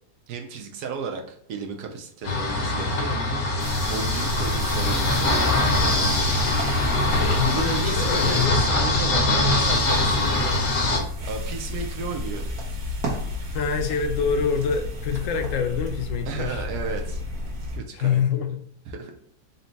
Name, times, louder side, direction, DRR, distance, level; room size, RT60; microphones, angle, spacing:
voice 1, 0.3-3.4 3.9-6.6 7.0-10.7 11.2-12.5 16.3-17.2 17.7-18.2 18.9-19.1, right 4 dB, 80° right, 3 dB, 1.2 m, -34 dB
sound 1, 2.2-11.0, left 2 dB, 85° left, 1.5 m, -23 dB
sound 2, 3.6-17.8, left 2 dB, 65° right, 1.5 m, -32 dB
voice 2, 7.2-8.6 13.5-16.6 17.9-18.6, left 6 dB, 65° left, 6 dB, 0.8 m, -26 dB
4.1 x 2.2 x 3.9 m, 0.68 s
omnidirectional pair, 1.7 m